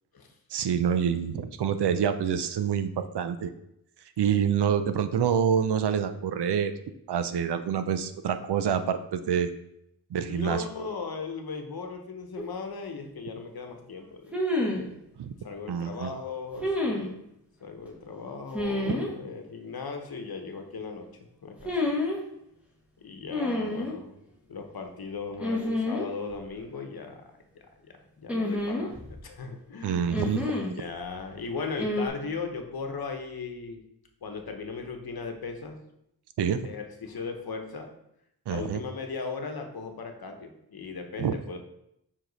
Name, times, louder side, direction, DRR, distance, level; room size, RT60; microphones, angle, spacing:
voice 1, 0.5-3.5 4.2-6.7 7.1-9.5 10.1-10.6 15.2-15.3 15.7-16.1 29.8-30.5 36.4-36.6 38.5-38.8 41.2-41.3, right 8 dB, 85° right, 10 dB, 0.6 m, -27 dB
voice 2, 10.3-14.4 14.7-15.0 15.4-17.3 17.6-21.1 21.4-21.7 23.0-24.2 24.5-30.1 30.7-33.8 34.2-35.8 36.6-37.9 38.5-41.6, left 4 dB, 65° left, 4 dB, 0.9 m, -37 dB
sound 1, 12.4-12.5 14.3-14.9 16.6-17.1 18.5-19.1 21.6-22.2 23.3-23.9 25.4-26.0 26.3-26.4 28.3-29.2 30.1-30.7 31.8-32.1, left 1 dB, 5° right, 1.2 m, -28 dB
5.8 x 4.9 x 4.0 m, 0.80 s
wide cardioid pair, 100°, 39 cm